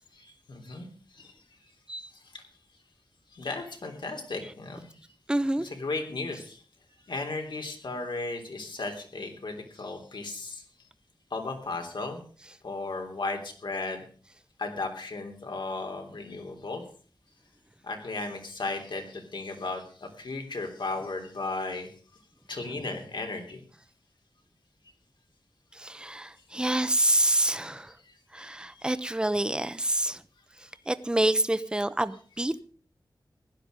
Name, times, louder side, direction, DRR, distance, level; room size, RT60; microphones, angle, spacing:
voice 1, 0.2-0.9 1.1-1.3 3.3-4.9 5.6-6.6 7.1-10.6 11.3-12.2 12.6-14.0 14.6-16.8 17.8-21.9 22.5-23.6 28.9-29.0, left 3 dB, 80° left, 3 dB, 3.3 m, -35 dB
voice 2, 5.3-5.7 22.7-22.8 25.7-27.9 28.3-30.2 30.6-32.6, right 1 dB, 10° right, 14 dB, 0.8 m, -27 dB
16.0 x 11.5 x 5.2 m, 0.43 s
wide cardioid pair, 90°, 8 cm